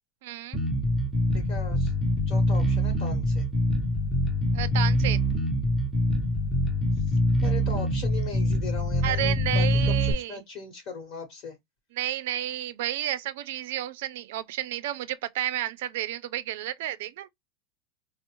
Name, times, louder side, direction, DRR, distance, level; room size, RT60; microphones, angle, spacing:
voice 1, 0.2-0.6 4.5-5.2 9.0-10.4 11.9-17.3, right 13 dB, 70° right, 0.4 m, -31 dB
Bass guitar, 0.5-10.1, equal, 5° left, 0.6 m, -24 dB
voice 2, 1.3-1.9 2.3-3.5 6.9-11.6, left 5 dB, 45° left, 1.0 m, -39 dB
4.4 x 2.0 x 2.9 m
supercardioid pair, 155°, 0 cm